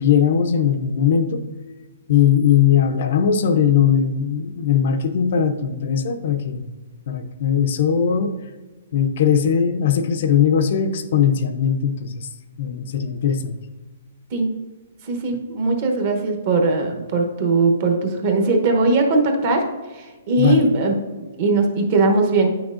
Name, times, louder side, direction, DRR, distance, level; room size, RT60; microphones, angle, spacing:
voice 1, 0.0-1.4 2.1-6.7 7.1-8.3 8.9-12.3 12.6-13.5 20.4-20.6, left 8 dB, 45° left, 8 dB, 0.5 m, -19 dB
voice 2, 15.1-19.6 19.9-22.5, right 3 dB, 30° right, 3 dB, 0.9 m, -20 dB
8.9 x 6.1 x 2.5 m, 1.3 s
hypercardioid pair, 175°, 0 cm